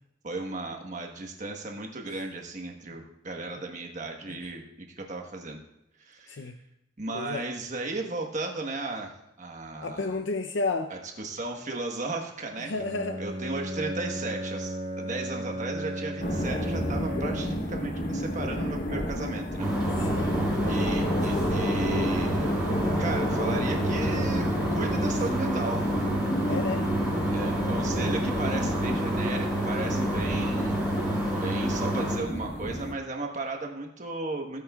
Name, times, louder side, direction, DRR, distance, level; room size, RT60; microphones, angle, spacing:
voice 1, 0.2-4.7 5.0-5.6 6.0-6.5 7.0-10.2 10.9-12.7 13.2-19.7 20.6-22.6 23.0-25.9 27.3-30.8 31.3-34.6, right 2 dB, 45° right, 2 dB, 1.3 m, -35 dB
voice 2, 6.3-6.6 7.1-7.4 9.8-10.9 12.7-13.2 20.0-20.3 26.4-26.8, left 3 dB, 80° left, 7 dB, 0.6 m, -32 dB
Bowed string instrument, 12.7-17.8, right 1 dB, 80° right, 2.0 m, -35 dB
sound 1, 16.2-32.9, left 1 dB, 50° left, 1.0 m, -31 dB
sound 2, 19.6-32.2, right 1 dB, 5° right, 4.4 m, -28 dB
16.5 x 9.0 x 2.3 m, 0.83 s
head